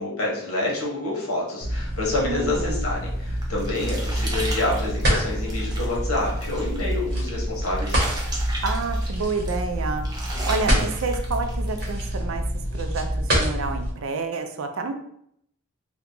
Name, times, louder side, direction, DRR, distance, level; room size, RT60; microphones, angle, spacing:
voice 1, 0.0-8.0, left 2 dB, 80° left, -3 dB, 1.2 m, -28 dB
sound 1, 1.6-13.9, equal, 50° right, 1.0 m, -26 dB
voice 2, 2.2-2.9 8.6-10.1 10.5-14.9, right 3 dB, 65° right, 7 dB, 0.4 m, -29 dB
sound 2, 3.0-11.9, right 2 dB, 20° right, 0.5 m, -37 dB
2.8 x 2.3 x 3.7 m, 0.71 s
head